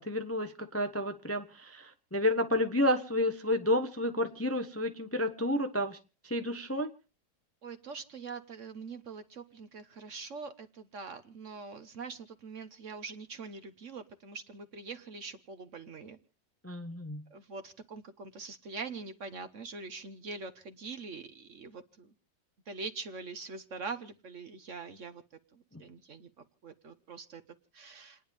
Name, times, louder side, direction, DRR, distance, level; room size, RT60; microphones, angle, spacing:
voice 1, 0.0-6.0 6.2-6.9 16.6-17.2, left 1 dB, 10° left, 7 dB, 0.6 m, -30 dB
voice 2, 7.6-16.2 17.3-22.1 22.7-25.2 25.5-27.4 27.7-28.2, right 4 dB, 50° right, 9 dB, 1.1 m, -43 dB
29.5 x 10.0 x 3.5 m, 0.35 s
omnidirectional pair, 1.9 m